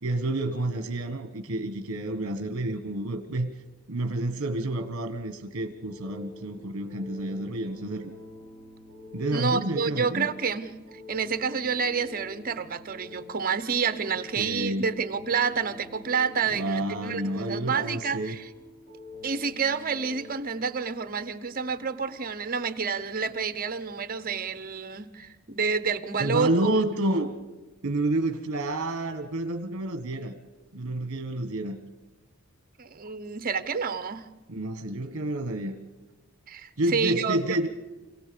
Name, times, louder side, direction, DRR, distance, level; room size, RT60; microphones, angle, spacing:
voice 1, 0.0-3.5 3.9-8.1 9.1-10.3 14.4-15.0 16.5-18.3 26.2-27.3 27.8-30.3 30.7-31.8 34.5-35.7 36.8-37.7, right 1 dB, 60° right, 1.3 m, -29 dB
sound 1, 5.4-20.3, left 3 dB, 50° left, 5.8 m, -47 dB
voice 2, 9.3-10.8 11.1-18.5 19.2-26.8 32.8-34.3 36.5-37.6, right 5 dB, 40° right, 0.9 m, -29 dB
27.0 x 17.5 x 7.0 m
head